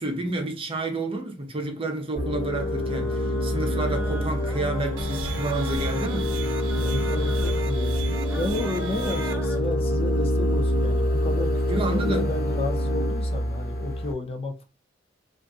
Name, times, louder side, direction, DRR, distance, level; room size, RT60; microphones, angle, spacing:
voice 1, 0.0-6.3 11.7-12.3, right 2 dB, 30° right, 0.7 m, -30 dB
sound 1, 2.2-14.1, equal, 50° left, 1.1 m, -26 dB
sound 2, 2.5-9.6, right 1 dB, 15° right, 1.1 m, -40 dB
sound 3, 5.0-9.3, right 3 dB, 90° right, 0.6 m, -35 dB
voice 2, 6.7-8.0 8.4-14.7, left 3 dB, 30° left, 0.5 m, -32 dB
2.6 x 2.5 x 3.5 m
head